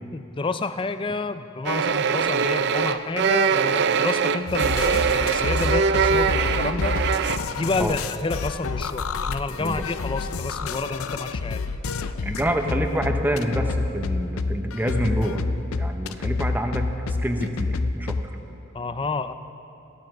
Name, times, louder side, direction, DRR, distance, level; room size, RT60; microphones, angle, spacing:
voice 1, 0.1-7.0 7.6-11.7 18.7-19.3, left 3 dB, 25° left, 11 dB, 0.4 m, -29 dB
sound 1, 1.6-7.4, right 6 dB, 55° right, 0.5 m, -22 dB
sound 2, 4.5-18.2, left 3 dB, 85° left, 0.5 m, -28 dB
voice 2, 12.2-15.4 15.7-18.2, equal, 10° right, 4 dB, 0.9 m, -27 dB
16.0 x 12.5 x 6.0 m, 3.0 s
head